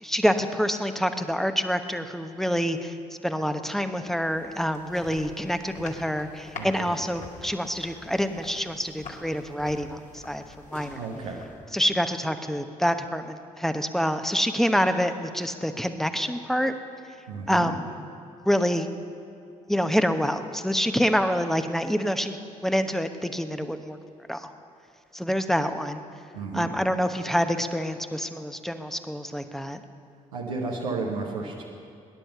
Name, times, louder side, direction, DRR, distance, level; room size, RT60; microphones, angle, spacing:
voice 1, 0.0-2.9 3.2-10.4 10.7-11.1 11.7-16.7 17.5-17.8 18.4-18.9 19.7-22.4 22.6-24.0 24.3-24.5 25.1-26.0 26.5-29.8, equal, ahead, 8 dB, 1.1 m, -26 dB
sound 1, 4.0-11.8, left 3 dB, 45° left, 2.0 m, -45 dB
voice 2, 6.6-6.9 10.9-11.4 17.3-17.7 26.3-26.7 30.3-31.6, right 3 dB, 85° right, -3 dB, 1.2 m, -32 dB
18.5 x 10.5 x 6.9 m, 2.5 s
hypercardioid pair, 45°, 18 cm